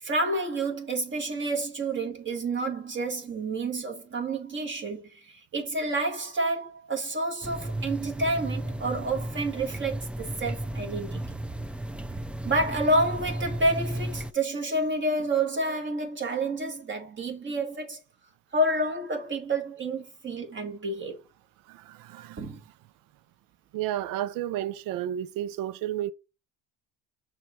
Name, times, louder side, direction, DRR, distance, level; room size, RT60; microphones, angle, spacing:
voice 1, 0.0-11.3 12.4-18.0 18.5-21.2 22.4-22.6, right 2 dB, 35° right, 1.8 m, -29 dB
sound 1, 7.4-14.3, right 1 dB, 5° right, 0.4 m, -34 dB
voice 2, 21.7-22.4 23.7-26.1, right 12 dB, 70° right, 0.6 m, -32 dB
6.3 x 3.3 x 5.8 m
cardioid pair, 105°, 34 cm